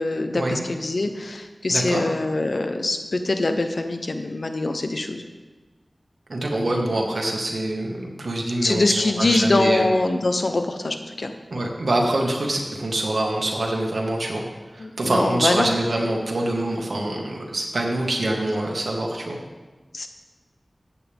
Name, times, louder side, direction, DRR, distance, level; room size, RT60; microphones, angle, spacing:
voice 1, 0.0-5.2 6.7-6.9 8.6-11.7 14.8-15.7 19.9-20.1, left 2 dB, 65° left, 6 dB, 1.0 m, -24 dB
voice 2, 1.7-2.0 6.3-9.8 11.5-14.4 14.7-19.4, right 1 dB, 75° right, 0 dB, 1.8 m, -25 dB
15.0 x 8.6 x 3.6 m, 1.3 s
wide cardioid pair, 75°, 0 cm